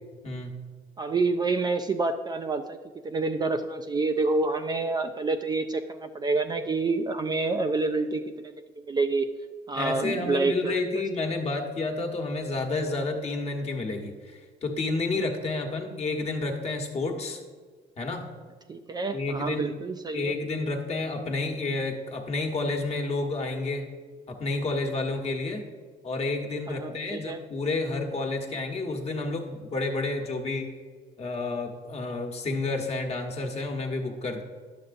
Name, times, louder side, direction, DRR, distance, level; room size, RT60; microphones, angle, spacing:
voice 1, 1.0-2.8 3.0-8.5 8.9-9.3 9.7-10.8 18.7-20.3 26.7-27.4, right 3 dB, 25° right, 7 dB, 0.3 m, -28 dB
voice 2, 9.7-17.4 18.0-18.3 19.1-19.8 20.1-23.8 24.3-25.6 26.0-30.7 31.2-34.4, left 3 dB, 40° left, 3 dB, 1.1 m, -30 dB
10.5 x 6.6 x 2.5 m, 1.5 s
cardioid pair, 110°, 17 cm